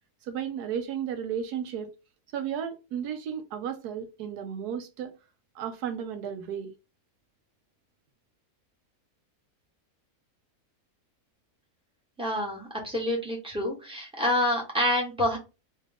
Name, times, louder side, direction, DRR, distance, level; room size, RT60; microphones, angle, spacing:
voice 1, 0.2-1.9 2.3-5.2 5.5-6.7, right 8 dB, 80° right, 1.2 m, -33 dB
voice 2, 12.2-15.4, left 1 dB, 5° right, 1.4 m, -27 dB
3.3 x 3.1 x 3.5 m
omnidirectional pair, 1.7 m